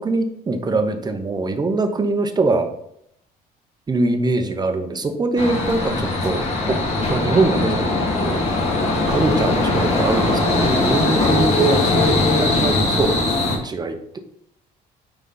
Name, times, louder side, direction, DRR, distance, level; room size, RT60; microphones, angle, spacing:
voice 1, 0.0-2.7 3.9-6.8 7.1-7.9 8.2-8.4 8.8-13.2 13.6-14.2, right 2 dB, 25° right, 7 dB, 1.0 m, -22 dB
sound 1, 5.4-13.6, left 2 dB, 40° left, 2.2 m, -20 dB
9.3 x 4.1 x 4.0 m, 0.73 s
cardioid pair, 110°, 17 cm